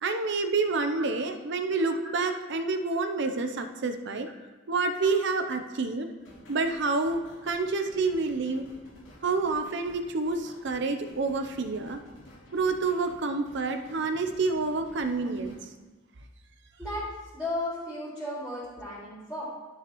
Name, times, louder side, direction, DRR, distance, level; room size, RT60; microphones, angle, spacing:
voice 1, 0.0-4.3 4.7-6.1 6.5-8.6 9.2-12.0 12.5-15.5, right 3 dB, 65° right, 7 dB, 0.7 m, -28 dB
voice 2, 2.9-3.4 5.0-5.1 5.5-5.6 8.2-8.3 15.3-15.5 16.8-17.0 17.3-19.5, left 1 dB, 5° right, -14 dB, 2.8 m, -36 dB
sound 1, 6.2-15.6, left 1 dB, 80° left, 2.4 m, -52 dB
12.0 x 6.3 x 3.1 m, 1.3 s
head